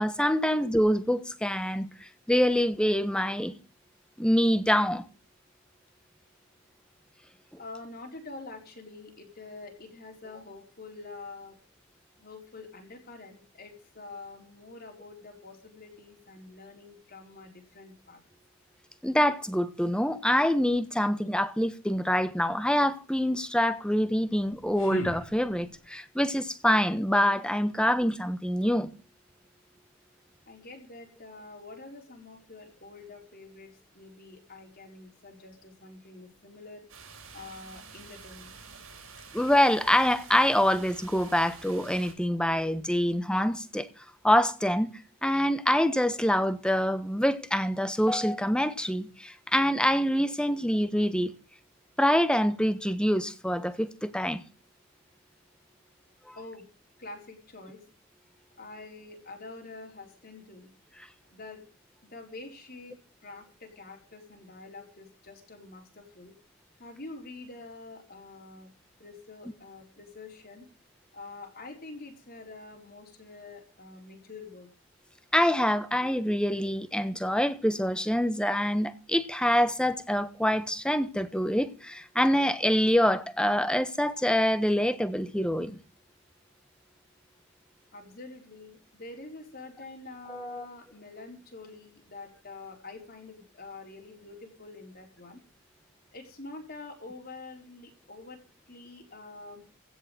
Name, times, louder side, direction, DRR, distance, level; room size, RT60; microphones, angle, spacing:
voice 1, 0.0-1.9 2.3-3.5 4.2-5.0 19.0-28.9 39.3-43.9 44.2-44.9 45.2-51.3 52.0-54.4 56.3-56.4 75.3-85.8 90.3-90.6, equal, 5° left, 1.2 m, -25 dB
voice 2, 7.6-11.6 12.2-18.2 30.5-36.8 37.3-38.6 41.4-41.6 56.3-56.7 57.0-57.9 58.6-60.7 61.3-61.6 62.1-63.0 63.2-66.3 66.8-68.7 69.0-70.7 71.1-74.7 87.9-95.4 96.1-98.4 98.7-99.7, left 3 dB, 45° left, 4.4 m, -46 dB
sound 1, 24.3-25.9, equal, 65° left, 2.8 m, -39 dB
sound 2, 36.9-42.1, right 5 dB, 75° right, 4.8 m, -48 dB
16.5 x 6.8 x 7.8 m
head